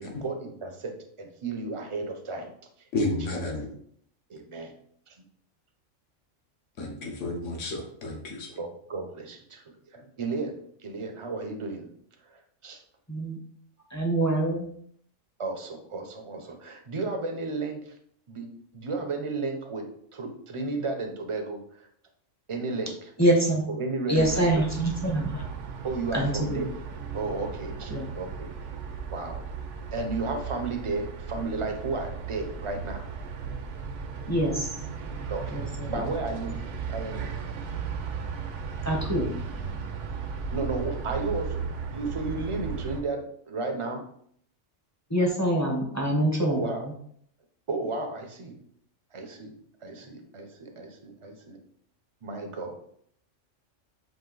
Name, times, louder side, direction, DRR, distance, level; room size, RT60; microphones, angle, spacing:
voice 1, 0.0-2.5 3.7-3.8 4.3-4.7 5.1-5.2 6.9-7.1 8.6-9.6 9.9-10.6 10.8-11.9 12.3-12.8 15.4-17.9 18.3-18.5 18.7-21.9 22.5-23.1 23.7-24.3 24.5-24.6 25.8-26.7 27.1-28.7 29.1-29.4 29.9-33.1 35.3-35.6 35.9-36.6 36.9-37.3 40.5-44.0 46.4-46.9 47.7-48.6 49.1-49.5 49.8-51.6 52.2-52.9, right 3 dB, 35° right, 4 dB, 0.5 m, -33 dB
voice 2, 2.9-3.7 6.8-8.6, left 2 dB, 70° left, 1 dB, 1.3 m, -31 dB
voice 3, 13.9-14.7 23.2-23.7 24.1-25.4 26.1-26.7 27.9-28.1 34.3-34.7 35.5-35.9 38.8-39.4 45.1-46.9, right 1 dB, 15° left, -1 dB, 0.6 m, -25 dB
sound 1, 24.1-43.0, right 6 dB, 70° right, 0.9 m, -36 dB
5.0 x 2.6 x 3.9 m, 0.64 s
omnidirectional pair, 1.3 m